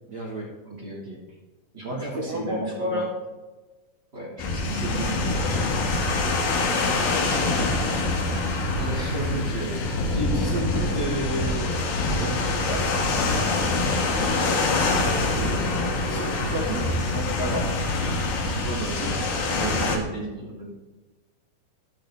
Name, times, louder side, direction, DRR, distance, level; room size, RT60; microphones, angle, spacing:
voice 1, 0.1-0.5 1.8-3.1 6.7-8.0 10.1-11.9 12.2-13.5 16.0-16.9 17.1-17.7, equal, 50° right, -5 dB, 1.3 m, -32 dB
voice 2, 0.6-1.2 1.7-3.0 4.1-5.3 8.8-10.0 15.3-17.2 18.6-20.7, right 2 dB, 20° right, -4 dB, 2.4 m, -34 dB
sound 1, 4.4-20.0, left 3 dB, 75° left, 3.3 m, -25 dB
12.5 x 8.6 x 3.5 m, 1.2 s
omnidirectional pair, 4.4 m